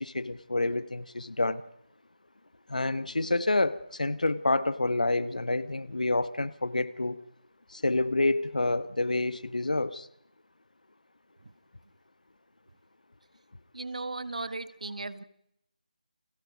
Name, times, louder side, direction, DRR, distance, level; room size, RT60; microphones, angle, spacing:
voice 1, 0.0-1.6 2.7-7.2 7.7-10.1, left 2 dB, 70° left, 15 dB, 1.4 m, -28 dB
voice 2, 13.7-15.2, right 3 dB, 60° right, 14 dB, 1.4 m, -36 dB
29.0 x 25.0 x 5.2 m, 0.80 s
figure-of-eight pair, 160°, 4 cm